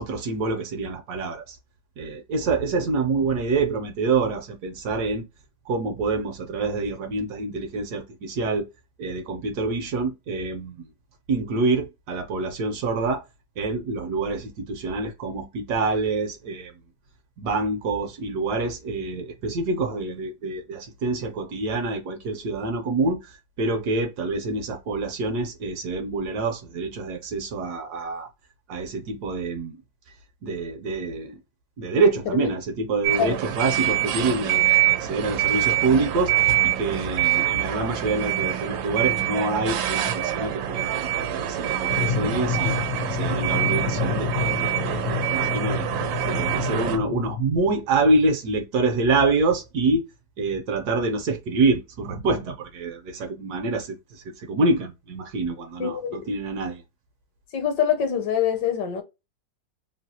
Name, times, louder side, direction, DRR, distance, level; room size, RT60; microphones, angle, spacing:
voice 1, 0.0-1.6 2.0-5.2 5.7-8.7 9.0-10.9 11.3-13.2 13.6-16.8 17.4-28.3 28.7-29.8 30.4-31.4 31.8-42.7 43.1-50.0 50.4-56.8, right 3 dB, 70° right, 1.1 m, -26 dB
sound 1, 33.0-47.0, right 12 dB, 85° right, 1.3 m, -25 dB
sound 2, 41.9-47.6, left 7 dB, 90° left, 0.6 m, -29 dB
voice 2, 55.8-56.3 57.5-59.0, left 8 dB, 70° left, 1.2 m, -24 dB
3.1 x 2.3 x 2.7 m
omnidirectional pair, 2.0 m